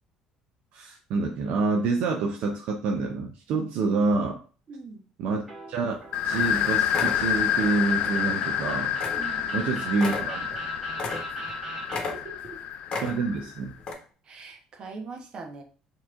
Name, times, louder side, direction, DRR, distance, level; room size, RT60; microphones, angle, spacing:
voice 1, 0.7-4.4 5.2-6.0 6.2-8.9 9.5-10.4 13.0-13.7, right 3 dB, 70° right, 2 dB, 0.6 m, -27 dB
voice 2, 4.7-5.0 9.1-9.7 12.1-12.6 14.2-15.6, right 3 dB, 45° right, 3 dB, 1.1 m, -41 dB
sound 1, 5.5-12.0, right 2 dB, 20° right, 1.7 m, -40 dB
sound 2, 6.0-6.1 6.4-6.6 6.9-7.3 8.0-8.2 8.5-8.6 9.0-9.3 9.5-9.6 9.9-11.6 11.9-12.5 12.9-13.4 13.8-13.9, left 3 dB, 40° left, 1.1 m, -34 dB
sound 3, 6.1-13.6, left 9 dB, 65° left, 0.4 m, -28 dB
4.7 x 3.0 x 3.6 m, 0.40 s
cardioid pair, 115°, 2 cm